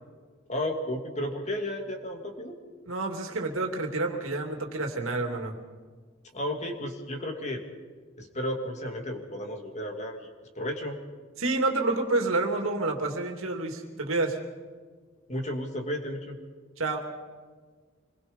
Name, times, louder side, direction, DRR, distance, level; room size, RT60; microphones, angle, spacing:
voice 1, 0.5-2.6 6.3-7.6 8.2-10.3 10.6-11.0 15.3-16.4, left 1 dB, 35° left, 3 dB, 2.7 m, -33 dB
voice 2, 2.9-5.5 11.4-14.4 16.8-17.1, right 2 dB, 70° right, 3 dB, 2.8 m, -28 dB
26.5 x 21.5 x 5.5 m, 1.5 s
head